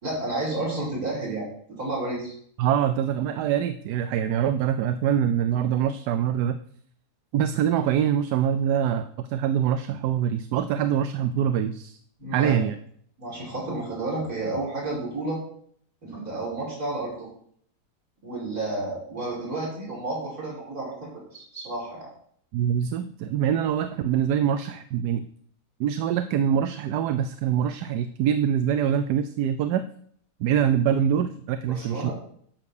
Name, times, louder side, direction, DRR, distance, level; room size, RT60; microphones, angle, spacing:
voice 1, 0.0-1.5 1.8-2.3 12.2-12.6 13.2-15.4 16.0-17.3 18.2-22.1 31.7-32.1, right 2 dB, 65° right, -4 dB, 5.7 m, -31 dB
voice 2, 2.6-6.6 7.3-12.0 12.3-12.8 22.5-25.2 25.8-29.8 30.4-32.1, right 9 dB, 85° right, 11 dB, 1.2 m, -24 dB
11.5 x 6.0 x 7.0 m, 0.62 s
omnidirectional pair, 1.7 m